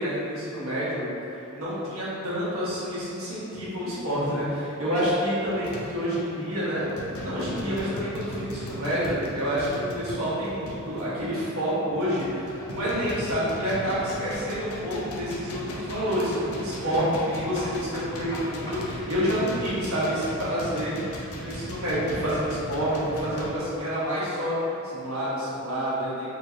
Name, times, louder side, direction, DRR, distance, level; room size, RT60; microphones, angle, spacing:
voice 1, 0.0-20.9 21.3-24.5 24.9-26.3, equal, 75° right, -9 dB, 1.4 m, -28 dB
sound 1, 4.7-4.9 5.6-6.1 6.5-6.7 7.0-11.1 11.7-23.6, left 1 dB, 90° left, 0.6 m, -39 dB
sound 2, 5.5-24.0, equal, 15° left, 0.6 m, -45 dB
4.4 x 3.1 x 2.8 m, 2.7 s
head